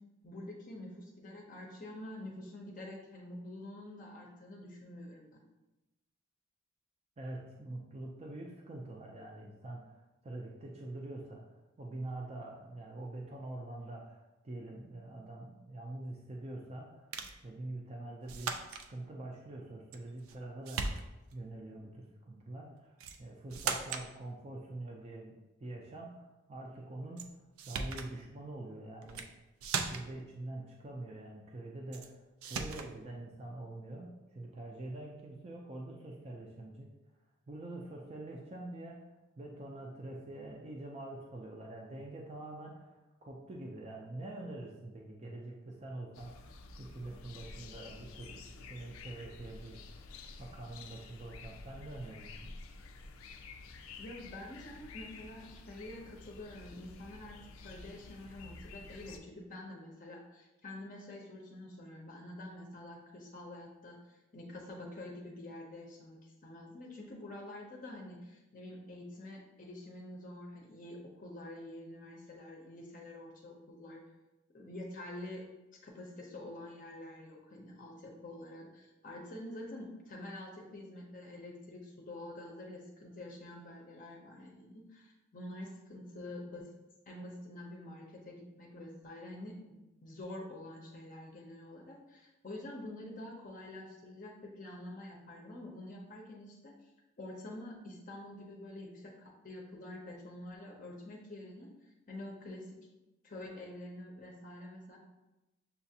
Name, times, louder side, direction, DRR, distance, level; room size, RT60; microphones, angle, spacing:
voice 1, 0.2-5.4 54.0-74.0 74.5-75.5 75.8-86.7 87.1-96.9 97.2-102.8 103.2-105.0, left 1 dB, 40° left, -1 dB, 0.6 m, -47 dB
voice 2, 7.2-17.2 17.4-18.6 18.9-21.0 21.3-25.3 25.6-27.3 27.7-29.3 29.6-36.9 37.5-39.0 39.4-52.5, right 2 dB, 30° right, -1 dB, 0.4 m, -45 dB
sound 1, 17.1-17.4 18.3-18.9 19.9-20.4 20.7-21.4 23.0-23.2 23.5-24.1 27.2-27.3 27.6-28.1 29.0-29.3 29.6-30.2 31.9-32.1 32.4-32.9, right 5 dB, 90° right, 0.4 m, -38 dB
sound 2, 46.1-59.2, left 3 dB, 85° left, 0.4 m, -50 dB
6.7 x 2.4 x 2.7 m, 1.0 s
head